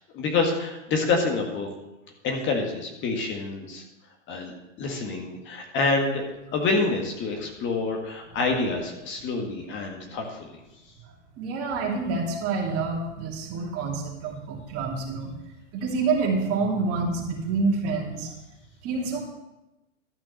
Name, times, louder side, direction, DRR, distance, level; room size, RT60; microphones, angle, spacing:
voice 1, 0.1-1.7 2.2-3.8 4.3-6.2 6.5-10.5, left 3 dB, 30° left, 2 dB, 1.8 m, -27 dB
voice 2, 11.4-15.4 15.7-18.3 18.8-19.2, right 4 dB, 40° right, 0 dB, 2.7 m, -27 dB
12.5 x 6.0 x 6.5 m, 0.96 s
hypercardioid pair, 115°, 38 cm